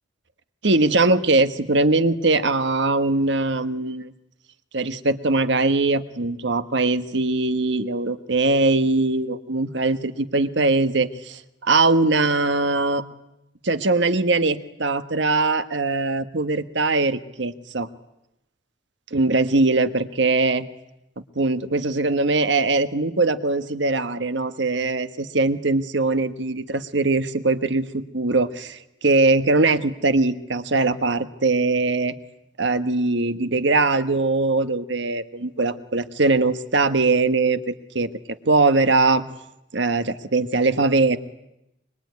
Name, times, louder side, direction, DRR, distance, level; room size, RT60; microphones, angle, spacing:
voice 1, 0.6-4.1 4.7-13.0 13.6-17.9 19.1-20.7 21.3-32.1 32.6-38.1 38.4-39.2 39.7-41.2, right 3 dB, 65° right, 10 dB, 1.4 m, -21 dB
25.0 x 24.5 x 9.5 m, 0.87 s
head